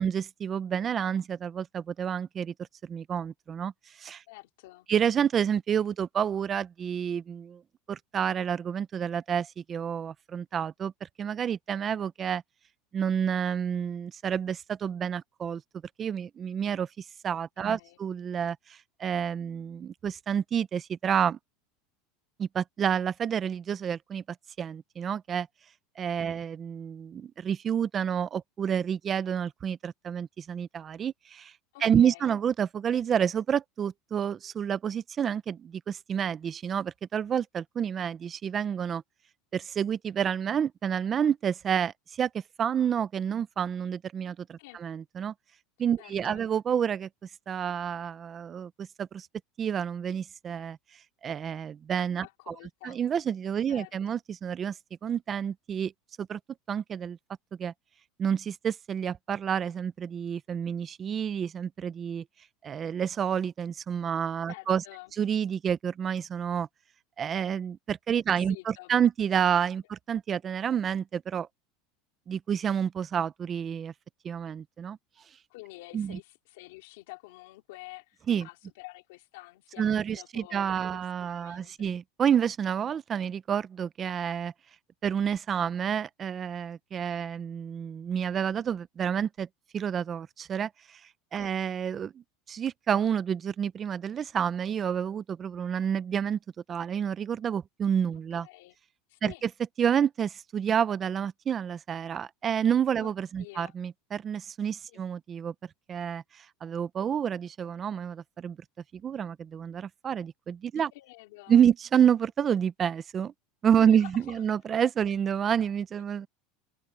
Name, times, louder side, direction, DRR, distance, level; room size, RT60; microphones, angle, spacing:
voice 1, 0.0-2.5 2.8-4.2 4.9-7.6 7.9-12.4 12.9-15.6 16.0-21.4 22.4-24.2 24.6-25.5 26.0-31.5 31.8-39.0 39.5-42.3 42.6-45.3 45.8-47.1 47.5-49.3 49.6-50.8 51.2-52.5 52.8-55.9 56.2-56.4 56.7-57.2 57.6-57.7 58.2-62.2 62.6-64.8 65.2-66.7 67.2-71.5 72.3-73.9 74.2-75.0 75.9-76.2 78.3-78.5 79.8-84.5 85.0-89.5 89.7-96.4 96.7-98.5 99.2-99.5 99.8-105.5 105.9-108.6 108.9-110.9 111.5-113.3 113.6-116.3, right 8 dB, 20° right, 0.3 m, -29 dB
voice 2, 4.3-4.9 17.6-18.0 26.3-26.4 31.7-32.3 44.6-44.8 46.0-46.5 52.2-53.0 53.7-53.9 64.5-65.1 68.3-68.9 75.5-81.7 91.4-91.5 98.4-98.8 99.1-99.4 103.0-103.1 103.4-103.7 104.9-105.0 110.7-111.6 113.8-114.4, left 22 dB, 65° left, 3.1 m, -48 dB
supercardioid pair, 175°, 0 cm